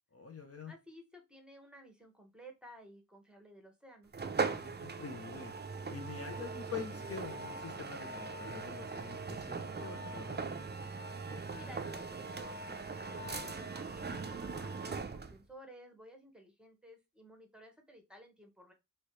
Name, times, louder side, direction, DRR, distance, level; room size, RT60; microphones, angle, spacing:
voice 1, 0.1-0.7 4.4-5.5 5.9-10.4, left 5 dB, 45° left, 2 dB, 0.6 m, -46 dB
voice 2, 0.7-4.1 11.3-18.7, equal, 5° right, 3 dB, 1.0 m, -55 dB
sound 1, 4.1-15.4, right 4 dB, 30° right, 0.4 m, -40 dB
3.0 x 2.8 x 3.0 m, 0.23 s
wide cardioid pair, 60°, 33 cm